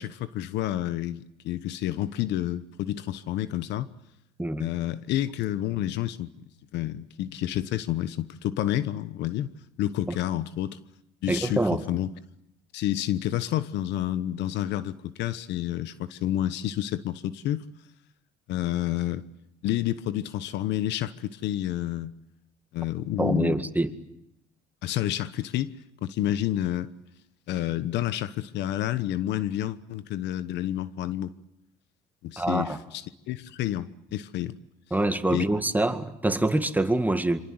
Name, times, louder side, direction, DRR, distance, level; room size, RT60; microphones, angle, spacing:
voice 1, 0.0-3.9 4.6-6.3 6.7-9.5 9.8-10.8 11.2-12.1 12.7-17.6 18.5-19.2 19.6-22.1 22.7-23.6 24.8-25.7 26.0-26.9 27.5-31.3 32.2-34.6 35.3-35.4, left 13 dB, 70° left, 1.1 m, -29 dB
voice 2, 11.3-11.8 23.2-23.9 32.4-32.8 34.9-37.4, right 2 dB, 10° right, 2.0 m, -25 dB
26.5 x 25.0 x 8.0 m
supercardioid pair, 75°, 18 cm